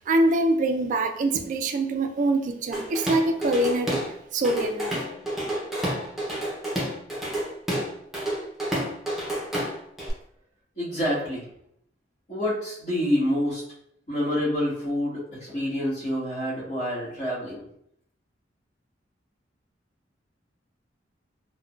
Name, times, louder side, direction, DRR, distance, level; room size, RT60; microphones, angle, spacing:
voice 1, 0.0-5.0, right 2 dB, 45° right, 5 dB, 0.3 m, -24 dB
Drum kit / Drum, 2.7-4.1 4.4-10.1, right 1 dB, ahead, 0.7 m, -29 dB
voice 2, 10.7-11.4 12.3-13.6 14.1-17.6, left 1 dB, 45° left, -15 dB, 1.5 m, -27 dB
3.6 x 2.2 x 2.4 m, 0.72 s
head